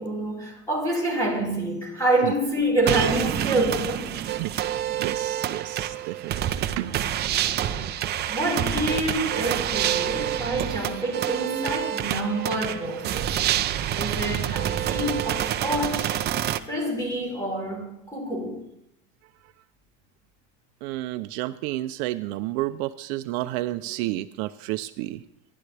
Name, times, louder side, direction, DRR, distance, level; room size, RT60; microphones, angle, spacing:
voice 1, 0.0-4.1 7.6-7.9 8.3-13.3 13.9-16.2 16.7-18.7, right 1 dB, 10° left, 4.0 m, -27 dB
sound 1, 2.9-16.6, right 11 dB, 30° right, 0.6 m, -27 dB
voice 2, 4.4-6.4 6.8-7.0 20.8-25.2, right 16 dB, 65° right, 0.7 m, -31 dB
26.0 x 11.0 x 3.4 m
cardioid pair, 155°, 34 cm